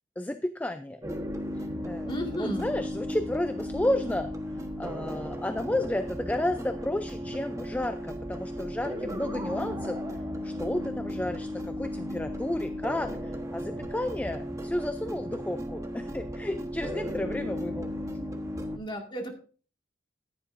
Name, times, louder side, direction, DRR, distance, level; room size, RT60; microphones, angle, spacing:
voice 1, 0.2-1.0 1.8-2.1 2.3-4.3 4.8-10.0 10.4-18.3, left 1 dB, 10° left, 9 dB, 0.4 m, -32 dB
sound 1, 1.0-18.8, equal, 15° right, 1.2 m, -35 dB
voice 2, 2.1-2.7 18.7-19.3, equal, 25° left, 3 dB, 2.0 m, -33 dB
14.5 x 10.0 x 2.6 m, 0.39 s
head